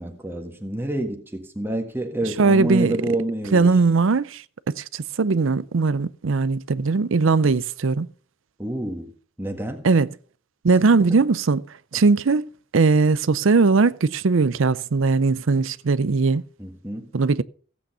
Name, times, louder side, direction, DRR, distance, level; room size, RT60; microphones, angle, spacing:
voice 1, 0.0-3.8 8.6-9.8 10.7-11.2 16.6-17.1, right 1 dB, 10° right, 1.6 m, -28 dB
voice 2, 2.4-3.0 3.5-8.1 9.8-10.1 10.6-11.6 11.9-16.4 17.1-17.4, right 4 dB, 70° right, 0.5 m, -19 dB
15.5 x 8.6 x 5.6 m
head